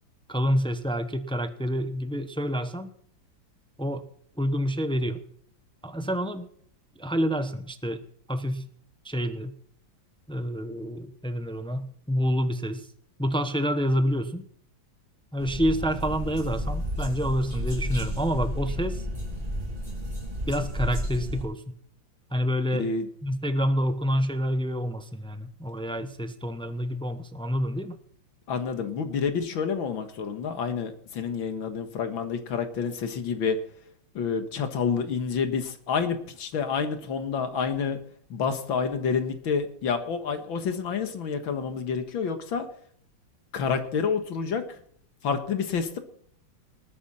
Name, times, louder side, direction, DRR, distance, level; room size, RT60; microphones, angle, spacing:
voice 1, 0.3-2.9 3.8-4.1 4.4-5.2 5.8-6.5 7.0-8.0 8.3-8.7 9.0-9.5 10.3-12.9 13.2-14.5 15.3-19.1 20.5-21.6 22.3-22.9 23.2-28.0, equal, 10° left, 9 dB, 0.3 m, -28 dB
sound 1, 15.4-21.4, equal, 20° right, 3.2 m, -32 dB
voice 2, 22.7-23.1 28.5-33.6 34.1-38.0 38.3-42.7 43.5-44.8 45.2-46.0, left 6 dB, 90° left, 8 dB, 2.3 m, -28 dB
20.0 x 9.7 x 4.2 m, 0.62 s
omnidirectional pair, 2.1 m